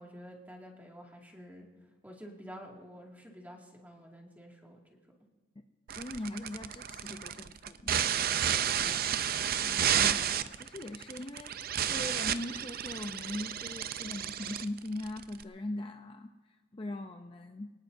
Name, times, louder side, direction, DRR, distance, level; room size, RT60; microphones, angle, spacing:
voice 1, 0.0-5.0 8.8-9.1, equal, 10° right, -1 dB, 2.2 m, -50 dB
voice 2, 5.9-8.5 9.6-17.7, left 1 dB, 30° left, 5 dB, 0.6 m, -41 dB
sound 1, 5.9-15.4, right 9 dB, 50° right, 0.5 m, -31 dB
22.5 x 19.0 x 2.7 m, 1.3 s
head